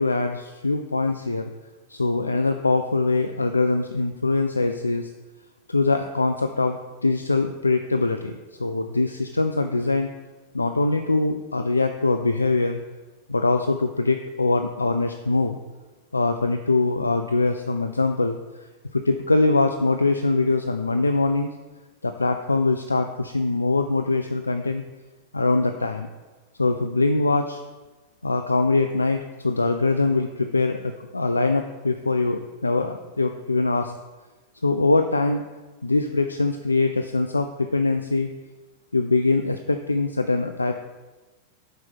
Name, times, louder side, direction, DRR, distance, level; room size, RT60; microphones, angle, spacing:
voice 1, 0.0-1.5 1.9-5.1 5.7-10.1 10.5-12.8 13.3-15.6 16.1-18.4 18.9-21.5 22.0-24.8 25.3-26.1 26.6-27.6 28.2-33.9 34.6-35.4 35.8-38.3 38.9-40.7, left 3 dB, 80° left, 7 dB, 0.3 m, -23 dB
5.4 x 4.6 x 5.9 m, 1.2 s
figure-of-eight pair, 90°, 0 cm